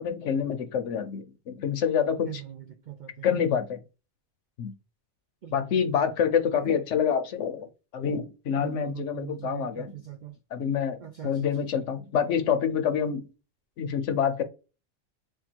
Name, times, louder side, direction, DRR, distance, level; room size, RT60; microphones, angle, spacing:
voice 1, 0.0-2.4 3.2-3.8 4.6-4.7 5.5-7.7 7.9-9.9 10.5-13.3 13.8-14.4, left 7 dB, 70° left, 0.9 m, -27 dB
voice 2, 2.3-3.4 5.4-5.7 6.5-6.8 8.5-10.3 11.0-11.5, right 11 dB, 70° right, 0.4 m, -41 dB
3.6 x 2.2 x 4.4 m
omnidirectional pair, 1.4 m